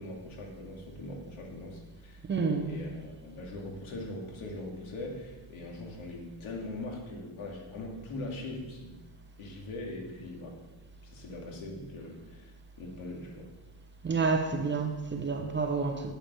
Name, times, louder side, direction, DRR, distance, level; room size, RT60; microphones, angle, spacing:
voice 1, 0.0-2.2 2.6-8.9 9.4-10.6 11.0-12.5 12.8-13.5, left 2 dB, 75° left, 2.8 m, -41 dB
voice 2, 2.3-2.7 14.0-16.1, right 4 dB, 25° right, 0.9 m, -29 dB
8.9 x 8.9 x 7.0 m
cardioid pair, 165°, 48 cm